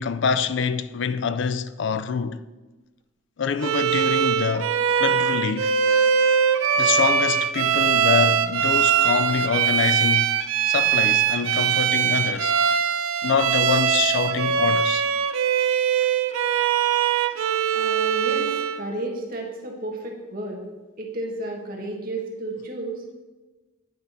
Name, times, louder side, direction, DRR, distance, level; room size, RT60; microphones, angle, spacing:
voice 1, 0.0-2.4 3.4-5.7 6.8-10.3 10.6-12.6 13.2-15.1, left 6 dB, 60° left, 0.4 m, -25 dB
Bowed string instrument, 3.6-18.8, right 8 dB, 85° right, 0.5 m, -21 dB
voice 2, 17.7-20.6 21.0-23.2, right 1 dB, 45° right, 1.4 m, -32 dB
9.2 x 4.4 x 5.4 m
head